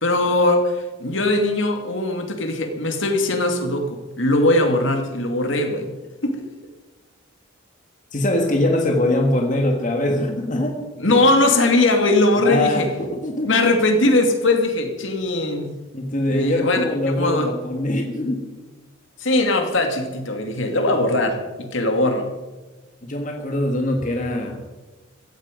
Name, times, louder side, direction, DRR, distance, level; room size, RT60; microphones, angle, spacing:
voice 1, 0.0-5.9 6.2-6.5 11.0-12.9 13.5-15.7 16.3-17.5 19.2-22.3, left 2 dB, 65° left, 5 dB, 2.3 m, -20 dB
voice 2, 8.1-10.8 12.4-13.6 15.9-18.5 23.0-24.6, left 1 dB, 40° left, 2 dB, 1.8 m, -22 dB
16.0 x 15.0 x 5.2 m, 1.2 s
head